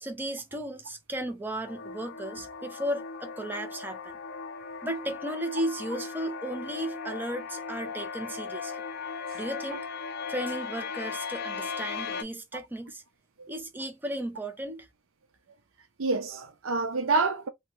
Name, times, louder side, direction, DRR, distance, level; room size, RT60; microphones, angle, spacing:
voice 1, 0.0-4.2 4.8-8.8 9.3-9.9 10.3-13.0 13.5-14.9, right 1 dB, 10° right, 0.5 m, -35 dB
sound 1, 1.6-12.2, left 5 dB, 55° left, 0.5 m, -37 dB
voice 2, 16.0-17.5, right 3 dB, 90° right, 0.6 m, -28 dB
3.0 x 2.2 x 3.0 m
head